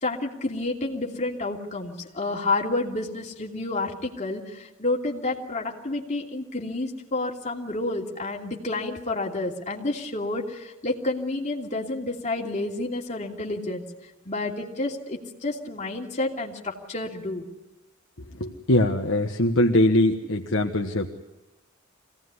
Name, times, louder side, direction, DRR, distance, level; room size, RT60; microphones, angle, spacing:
voice 1, 0.0-4.4 4.8-13.8 14.3-17.4, left 2 dB, 35° left, -1 dB, 2.9 m, -29 dB
voice 2, 18.4-21.1, left 1 dB, 60° left, 1 dB, 1.5 m, -22 dB
25.0 x 18.0 x 9.7 m, 1.0 s
head